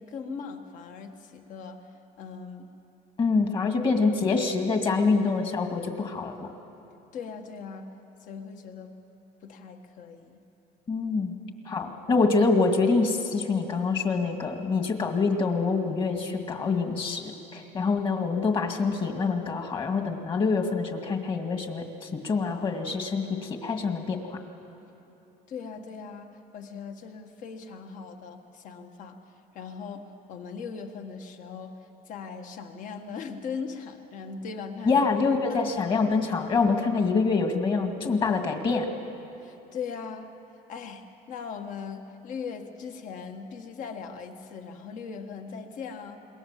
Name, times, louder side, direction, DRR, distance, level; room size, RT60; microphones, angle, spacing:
voice 1, 0.0-1.9 2.2-2.7 7.1-9.0 9.4-10.4 25.5-29.2 29.5-35.0 35.5-35.6 39.4-40.3 40.7-46.3, left 5 dB, 55° left, 5 dB, 1.7 m, -39 dB
voice 2, 3.2-6.5 10.9-11.3 11.7-24.4 34.8-38.9, left 4 dB, 30° left, 4 dB, 2.3 m, -26 dB
27.5 x 22.0 x 7.6 m, 3.0 s
cardioid pair, 155°, 16 cm